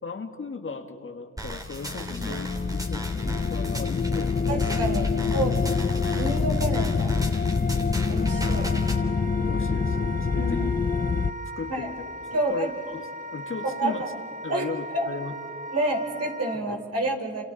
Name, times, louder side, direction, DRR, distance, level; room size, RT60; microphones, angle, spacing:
voice 1, 0.0-4.5 9.5-10.7 11.6-12.0 12.3-14.0 14.4-15.3 16.6-16.7, left 4 dB, 45° left, 5 dB, 1.9 m, -37 dB
sound 1, 1.4-9.0, right 1 dB, 10° right, 3.0 m, -37 dB
sound 2, 1.5-11.3, left 5 dB, 30° left, 0.7 m, -26 dB
voice 2, 4.5-7.1 8.1-8.7 10.3-10.5 11.7-11.9 12.3-12.7 13.6-14.1 14.5-15.1 15.7-17.4, right 1 dB, 55° right, 1 dB, 4.7 m, -29 dB
Wind instrument woodwind instrument, 8.2-16.6, equal, 25° right, 2.2 m, -38 dB
29.0 x 27.5 x 4.2 m, 2.3 s
cardioid pair, 60°, 29 cm